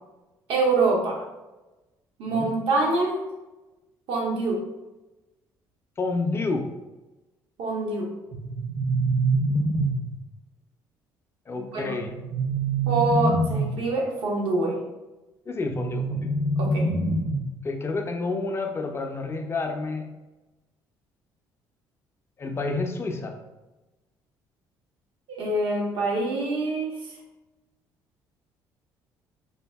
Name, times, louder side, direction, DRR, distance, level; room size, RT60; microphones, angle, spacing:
voice 1, 0.5-1.2 2.2-3.2 4.1-4.6 7.6-8.1 11.5-11.9 12.9-14.8 16.6-16.9 25.3-27.1, right 2 dB, 70° right, -1 dB, 0.8 m, -25 dB
voice 2, 6.0-6.7 11.5-12.2 15.5-16.3 17.6-20.1 22.4-23.4, left 3 dB, 30° left, 4 dB, 0.4 m, -29 dB
sound 1, 8.3-10.3 12.0-13.9 15.7-17.7, right 2 dB, 30° right, 0.6 m, -25 dB
2.7 x 2.6 x 2.2 m, 1.1 s
supercardioid pair, 70°, 9 cm